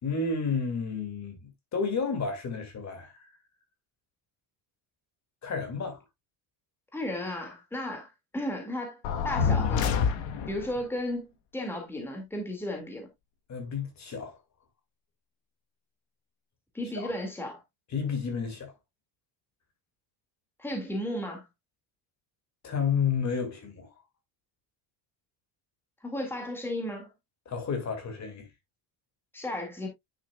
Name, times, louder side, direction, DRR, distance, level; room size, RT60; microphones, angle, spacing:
voice 1, 0.0-3.3 5.4-6.0 13.5-14.4 17.0-17.1 17.9-18.7 22.6-23.9 27.5-28.5, left 5 dB, 35° left, 2.1 m, -31 dB
voice 2, 6.9-9.0 9.2-9.9 10.5-13.1 16.7-17.6 20.6-21.5 26.0-27.1 29.3-29.9, left 1 dB, 5° left, 2.0 m, -34 dB
sound 1, 9.0-10.7, left 6 dB, 65° left, 1.3 m, -26 dB
10.0 x 6.4 x 2.3 m
cardioid pair, 175°, 49 cm